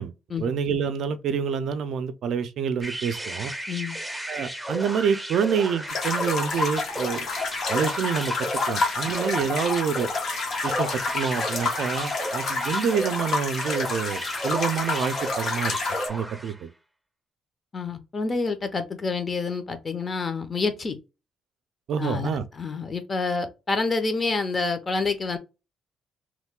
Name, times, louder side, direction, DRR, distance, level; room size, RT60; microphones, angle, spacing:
voice 1, 0.4-3.5 4.3-7.3 7.7-8.3 8.7-10.1 10.6-15.8 16.1-16.7 21.9-22.4, right 7 dB, 70° right, 0.4 m, -27 dB
sound 1, 2.8-16.6, right 1 dB, 5° right, 0.5 m, -34 dB
sound 2, 5.9-16.1, left 3 dB, 65° left, 0.9 m, -29 dB
voice 2, 17.7-21.0 22.0-25.4, left 4 dB, 35° left, 0.7 m, -28 dB
3.0 x 2.2 x 3.6 m
cardioid pair, 90°, 0 cm